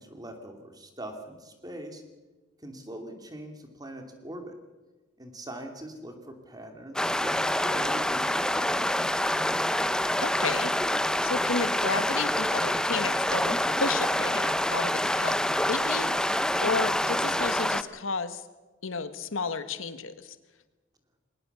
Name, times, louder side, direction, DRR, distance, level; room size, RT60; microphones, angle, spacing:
voice 1, 0.0-2.0 2.6-4.6 5.2-8.8, right 1 dB, 20° right, 5 dB, 2.8 m, -42 dB
sound 1, 7.0-17.8, left 1 dB, 5° left, 0.7 m, -26 dB
voice 2, 10.2-10.7 11.2-18.4 18.8-20.4, left 4 dB, 90° left, 12 dB, 1.4 m, -32 dB
20.5 x 19.0 x 6.9 m, 1.2 s
head